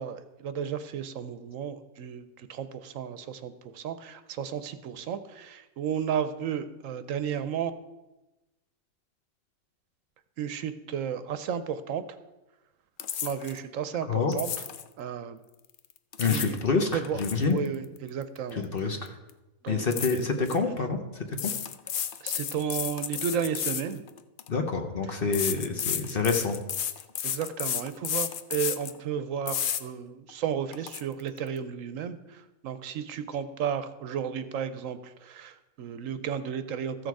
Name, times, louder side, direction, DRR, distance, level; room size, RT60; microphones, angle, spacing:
voice 1, 0.0-7.7 10.4-12.0 13.2-14.6 15.0-15.4 16.2-16.6 16.9-17.2 17.5-19.0 19.6-19.8 20.5-20.6 22.2-24.1 27.2-37.1, right 8 dB, 70° right, 11 dB, 1.0 m, -33 dB
sound 1, 13.0-13.6 14.3-14.9 15.9-16.6 16.9-18.8 19.1-19.3 19.9-20.6 21.3-24.5 25.3-29.0 29.5-29.8 30.3-30.4 30.7-31.0, left 9 dB, 70° left, 0.5 m, -32 dB
voice 2, 14.1-14.4 16.2-17.6 18.5-19.2 19.7-21.5 22.7-22.8 24.5-26.6, left 4 dB, 45° left, 5 dB, 1.0 m, -27 dB
14.5 x 6.5 x 4.7 m, 1.0 s
omnidirectional pair, 1.5 m